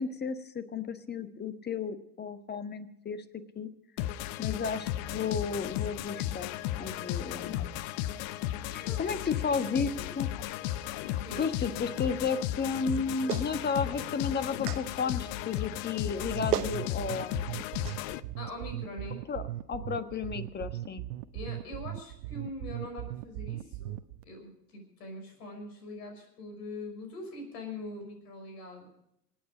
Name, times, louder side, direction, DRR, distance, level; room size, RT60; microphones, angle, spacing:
voice 1, 0.0-3.2 3.5-3.7 4.4-6.5 6.8-7.8 8.7-10.3 11.4-17.5 19.3-19.4 19.7-21.0, left 5 dB, 20° left, 11 dB, 1.3 m, -33 dB
sound 1, 4.0-18.2, left 13 dB, 45° left, 0.7 m, -35 dB
voice 2, 8.8-10.1 11.1-11.5 18.4-19.2 21.3-23.9 24.2-28.9, left 2 dB, 70° left, 4 dB, 6.0 m, -43 dB
Clapping, 13.3-13.5 14.7-14.8 16.1-16.2 16.5-16.8 17.8-18.0, right 12 dB, 70° right, 1.2 m, -31 dB
sound 2, 16.2-24.2, right 14 dB, 50° right, 0.9 m, -38 dB
27.5 x 9.3 x 5.0 m, 0.77 s
figure-of-eight pair, 85°, 49 cm